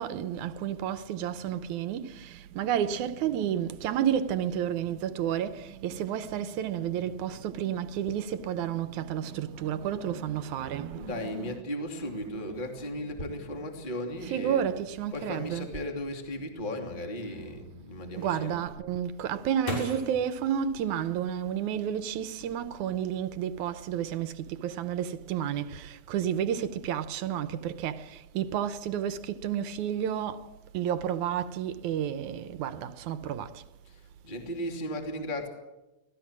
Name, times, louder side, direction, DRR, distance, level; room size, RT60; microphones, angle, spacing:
voice 1, 0.0-11.6 12.0-12.1 14.2-15.7 18.2-28.1 28.3-30.4 30.7-33.5, right 9 dB, 80° right, 2.3 m, -31 dB
voice 2, 10.7-14.6 15.1-18.6 33.8-35.5, left 1 dB, 15° left, 2.6 m, -36 dB
sound 1, 18.7-21.7 22.3-23.0 23.3-23.8, left 2 dB, 65° left, 7.3 m, -40 dB
26.0 x 18.5 x 7.4 m
omnidirectional pair, 3.5 m